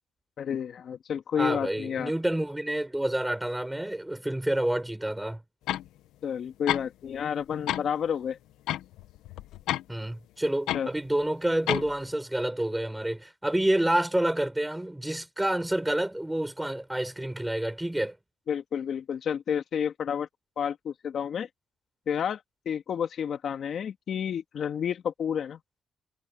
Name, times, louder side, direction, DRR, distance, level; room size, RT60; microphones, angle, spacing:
voice 1, 0.4-2.1 6.2-8.4 10.7-10.9 18.5-20.3 20.6-21.5 22.1-22.4 22.7-25.6, left 8 dB, 60° left, 2.2 m, -30 dB
voice 2, 1.4-5.4 9.9-18.1, right 1 dB, 10° right, 4.6 m, -28 dB
sound 1, 5.7-5.9 6.7-7.2 7.5-7.9 8.7-9.8 10.7-10.9 11.7-12.0, left 13 dB, 90° left, 1.4 m, -30 dB
cardioid pair, 90°, 0 cm